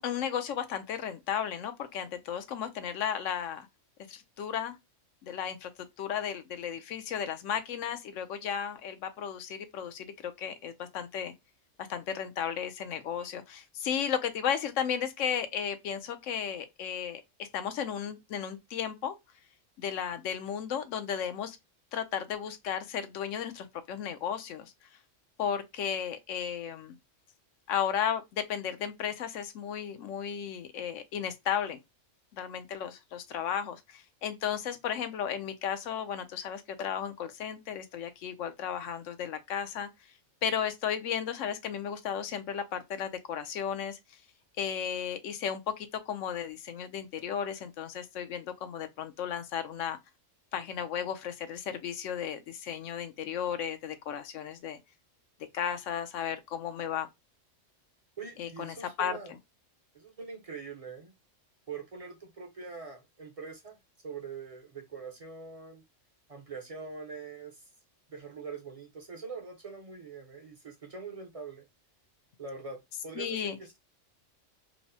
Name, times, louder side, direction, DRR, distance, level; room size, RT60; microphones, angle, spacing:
voice 1, 0.0-3.7 4.1-4.8 5.2-5.7 6.0-11.3 11.8-19.1 19.8-21.6 21.9-24.7 25.4-27.0 27.7-31.8 32.3-39.9 40.4-44.0 44.6-50.0 50.5-54.8 55.5-57.1 58.4-59.2 73.2-73.6, left 8 dB, 80° left, 1.0 m, -34 dB
voice 2, 58.2-59.3 59.9-61.1 61.7-63.8 64.0-65.8 66.3-67.6 68.1-71.7 72.4-73.8, right 5 dB, 40° right, 0.6 m, -43 dB
4.5 x 2.0 x 2.6 m
omnidirectional pair, 1.3 m